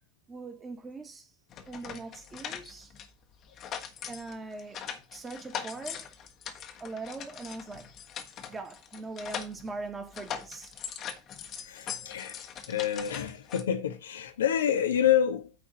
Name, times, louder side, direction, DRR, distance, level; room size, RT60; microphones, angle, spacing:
voice 1, 0.3-1.3 1.7-2.9 4.1-6.0 6.8-7.9 8.5-10.7, right 3 dB, 20° right, 1.9 m, -41 dB
sound 1, 1.5-3.1 3.4-9.9 10.1-13.6, left 8 dB, 40° left, 1.4 m, -41 dB
voice 2, 11.6-15.5, left 9 dB, 70° left, 1.1 m, -28 dB
9.3 x 4.0 x 6.3 m
figure-of-eight pair, 75°, 0 cm